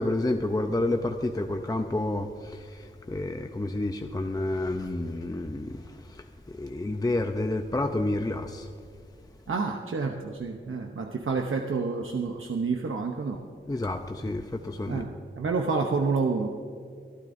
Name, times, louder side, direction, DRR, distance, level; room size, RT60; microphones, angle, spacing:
voice 1, 0.0-5.8 6.1-8.7 13.7-15.0, left 2 dB, 20° left, 5 dB, 0.6 m, -29 dB
voice 2, 9.5-13.4 14.9-16.5, right 4 dB, 80° right, 2 dB, 0.8 m, -29 dB
24.5 x 12.0 x 2.7 m, 2.2 s
wide cardioid pair, 90°, 21 cm